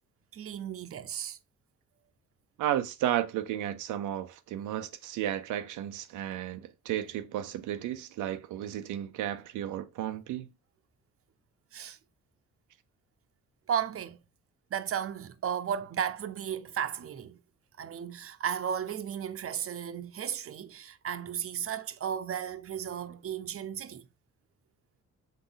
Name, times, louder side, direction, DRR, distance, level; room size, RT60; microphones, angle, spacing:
voice 1, 0.3-1.4 11.7-12.0 13.7-14.2 14.7-17.4 17.8-24.1, right 8 dB, 50° right, 0.9 m, -34 dB
voice 2, 2.6-10.5, right 12 dB, 90° right, 0.7 m, -33 dB
7.3 x 4.0 x 3.9 m
cardioid pair, 90°, 30 cm